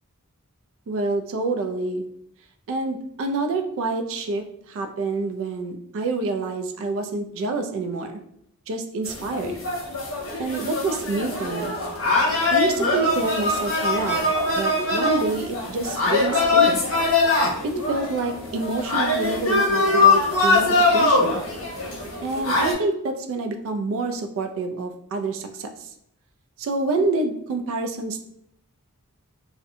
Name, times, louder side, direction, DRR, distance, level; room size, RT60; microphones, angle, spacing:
voice 1, 0.9-2.0 2.7-8.2 8.7-9.6 10.4-11.8 12.5-14.2 14.6-16.9 17.6-21.4 22.2-25.9 26.6-28.2, right 3 dB, 60° right, 7 dB, 0.3 m, -27 dB
sound 1, 9.0-22.7, left 2 dB, 60° left, 0.9 m, -22 dB
2.5 x 2.1 x 2.6 m, 0.73 s
head